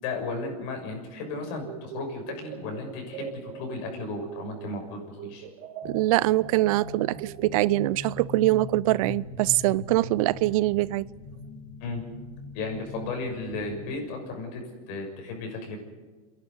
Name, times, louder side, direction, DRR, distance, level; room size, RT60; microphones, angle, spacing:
voice 1, 0.0-5.4 11.8-12.0 12.5-14.6 14.9-15.8, left 3 dB, 60° left, 6.5 m, -34 dB
sound 1, 1.6-4.8 5.1-8.2, right 9 dB, 50° right, 3.9 m, -42 dB
sound 2, 5.8-14.0, left 3 dB, 40° left, 3.3 m, -41 dB
voice 2, 5.8-11.0, right 18 dB, 65° right, 0.6 m, -23 dB
28.5 x 11.0 x 9.6 m
supercardioid pair, 130°, 19 cm